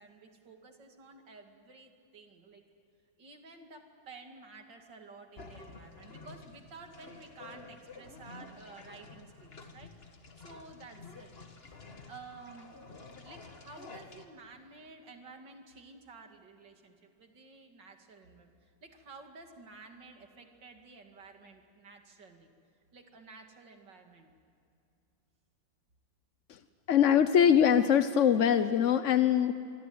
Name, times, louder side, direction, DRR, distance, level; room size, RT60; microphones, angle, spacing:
voice 1, 0.0-2.6 3.2-10.0 10.4-11.5 12.1-12.7 13.2-22.5 22.9-24.3, right 3 dB, 65° right, 4 dB, 3.0 m, -52 dB
sound 1, 5.4-14.3, left 3 dB, 30° left, 1.7 m, -50 dB
voice 2, 26.9-29.5, left 8 dB, 60° left, 10 dB, 0.8 m, -23 dB
26.0 x 23.5 x 9.5 m, 2.7 s
omnidirectional pair, 2.1 m